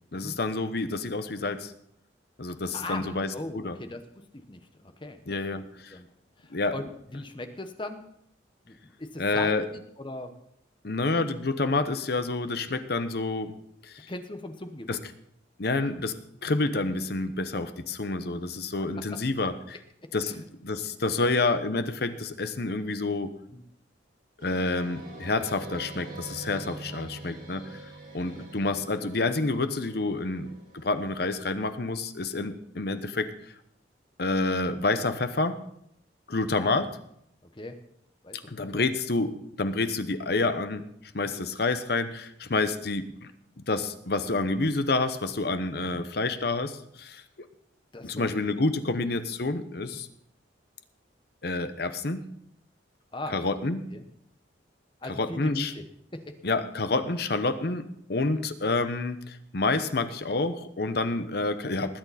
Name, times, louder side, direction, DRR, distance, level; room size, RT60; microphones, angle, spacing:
voice 1, 0.1-1.7 2.4-3.8 5.3-6.0 6.5-6.7 9.2-9.7 10.8-13.5 13.8-14.1 14.9-15.0 15.6-16.1 16.4-19.8 20.1-23.3 24.4-27.8 28.1-33.3 34.2-35.6 36.3-36.9 38.5-40.8 41.1-43.3 43.6-47.2 48.0-50.1 51.4-52.2 53.3-53.9 55.1-55.7 56.4-62.0, left 3 dB, 55° left, 10 dB, 0.9 m, -28 dB
voice 2, 2.7-4.0 4.3-5.2 5.5-6.1 6.4-8.0 8.6-10.3 14.1-15.0 19.1-19.2 20.2-20.4 21.2-21.3 23.5-23.6 28.3-28.5 36.5-36.9 37.5-37.8 38.2-38.7 45.9-46.0 47.9-48.3 49.8-50.0 53.1-53.4 53.9-54.0 55.0-55.8 56.1-56.3, left 2 dB, 25° left, 7 dB, 1.0 m, -39 dB
sound 1, 24.4-31.7, right 2 dB, 50° right, 5.2 m, -45 dB
20.0 x 8.8 x 4.2 m, 0.73 s
head